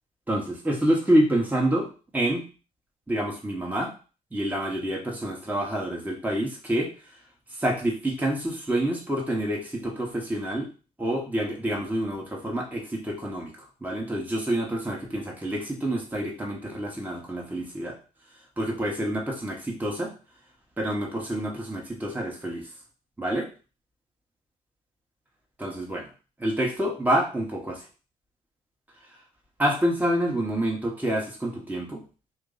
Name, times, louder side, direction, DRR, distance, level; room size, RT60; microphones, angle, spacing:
voice 1, 0.3-1.9 2.1-2.4 3.1-3.9 4.3-6.9 7.5-10.7 11.0-13.5 13.8-18.0 18.6-20.1 20.8-22.7 23.2-23.5 25.6-26.1 26.4-27.8 29.6-32.0, right 1 dB, 10° right, -1 dB, 1.1 m, -27 dB
2.9 x 2.5 x 3.9 m, 0.35 s
hypercardioid pair, 50°, 18 cm